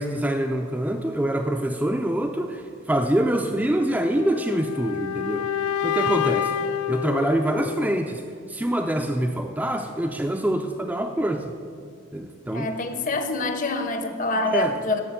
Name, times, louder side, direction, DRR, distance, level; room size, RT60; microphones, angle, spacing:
voice 1, 0.0-5.5 5.8-6.5 6.9-8.2 8.5-11.6 12.1-12.7 14.4-14.8, right 1 dB, 5° right, 3 dB, 0.3 m, -25 dB
sound 1, 4.1-8.1, left 9 dB, 90° left, 0.3 m, -28 dB
voice 2, 12.5-15.0, left 2 dB, 35° left, 7 dB, 0.7 m, -26 dB
12.5 x 5.7 x 6.7 m, 2.2 s
head